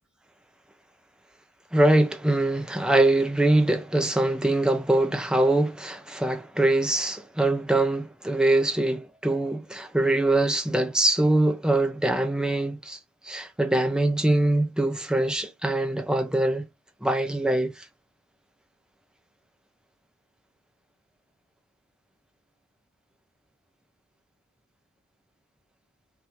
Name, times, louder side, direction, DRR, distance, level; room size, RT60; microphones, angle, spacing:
voice 1, 1.7-13.0 13.2-16.6 17.0-17.9, right 2 dB, 5° right, 0.6 m, -23 dB
4.6 x 2.8 x 3.4 m
head